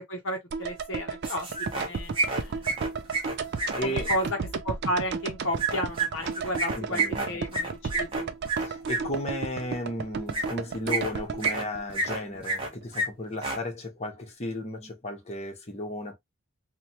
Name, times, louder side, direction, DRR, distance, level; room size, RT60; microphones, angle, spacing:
voice 1, 0.0-1.5 1.7-2.7 3.8-4.4 4.6-8.3, equal, 55° left, 0.7 m, -33 dB
sound 1, 0.5-12.7 13.0-13.1, right 5 dB, 50° right, 0.4 m, -34 dB
sound 2, 1.2-1.9 2.1-4.2 5.6-9.0 10.3-10.5 10.9-11.6 11.9-12.7 12.9-13.1 13.3-13.6, right 3 dB, 25° right, 0.9 m, -29 dB
voice 2, 3.7-4.1 6.8-7.3 8.6-16.2, left 1 dB, 30° left, 0.9 m, -34 dB
3.0 x 2.2 x 2.7 m
head